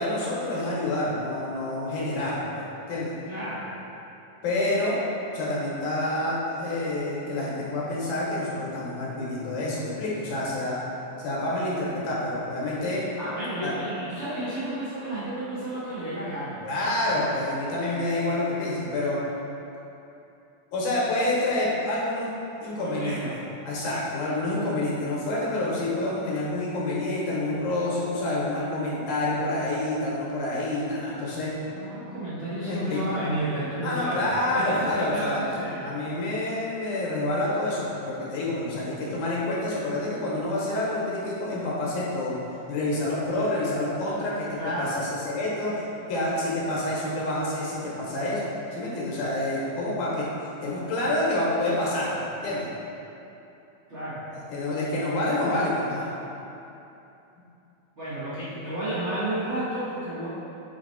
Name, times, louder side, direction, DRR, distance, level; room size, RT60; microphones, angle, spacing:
voice 1, 0.0-3.1 4.4-5.0 5.3-10.8 11.2-13.0 13.6-13.7 16.6-19.2 20.7-22.3 22.6-23.3 23.7-31.6 32.6-33.2 33.8-35.4 35.8-42.4 42.7-44.5 44.8-45.8 46.1-48.4 48.7-50.3 50.6-52.7 54.5-56.1, left 1 dB, 85° left, -6 dB, 2.6 m, -28 dB
voice 2, 3.2-3.6 13.1-16.6 22.8-23.3 31.6-35.9 44.6-44.9 53.9-54.2 58.0-60.3, right 1 dB, 60° right, -12 dB, 0.7 m, -32 dB
7.0 x 3.4 x 4.1 m, 2.9 s
omnidirectional pair, 3.4 m